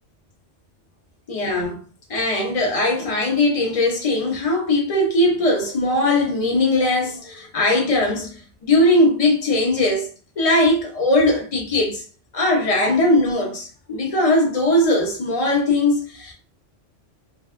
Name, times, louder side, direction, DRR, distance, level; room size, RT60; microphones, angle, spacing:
voice 1, 1.3-1.8 2.1-10.1 10.4-12.0 12.3-16.3, left 1 dB, 35° left, 0.7 m, -20 dB
2.5 x 2.4 x 2.4 m
omnidirectional pair, 1.2 m